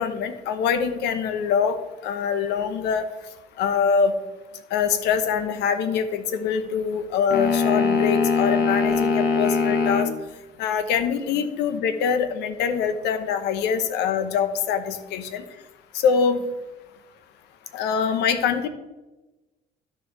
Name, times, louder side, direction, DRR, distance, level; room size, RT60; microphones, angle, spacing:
voice 1, 0.0-1.8 2.0-3.1 3.6-4.1 4.7-10.1 10.6-15.4 15.9-16.4 17.7-18.7, left 6 dB, 85° left, 10 dB, 0.9 m, -24 dB
sound 1, 7.3-10.1, left 4 dB, 65° left, 1.5 m, -21 dB
12.5 x 4.7 x 4.6 m, 1.1 s
cardioid pair, 110°, 17 cm